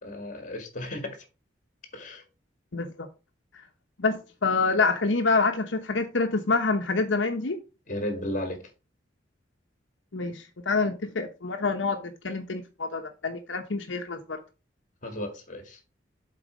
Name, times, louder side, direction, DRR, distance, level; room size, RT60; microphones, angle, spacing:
voice 1, 0.0-1.2 1.9-2.2 7.9-8.7 15.0-15.8, left 1 dB, 45° left, 2.0 m, -34 dB
voice 2, 2.7-3.1 4.0-7.6 10.1-14.4, left 3 dB, 85° left, 0.9 m, -27 dB
7.7 x 4.3 x 5.0 m
head